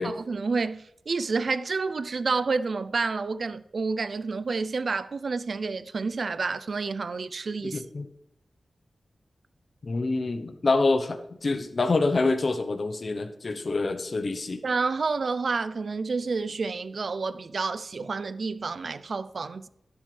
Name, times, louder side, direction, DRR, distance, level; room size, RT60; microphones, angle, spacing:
voice 1, 0.0-7.8 14.6-19.7, right 4 dB, 60° right, 0.5 m, -29 dB
voice 2, 7.7-8.1 9.8-11.2 11.4-14.6, left 3 dB, 50° left, 0.9 m, -26 dB
12.0 x 10.5 x 3.3 m
wide cardioid pair, 105°, 0 cm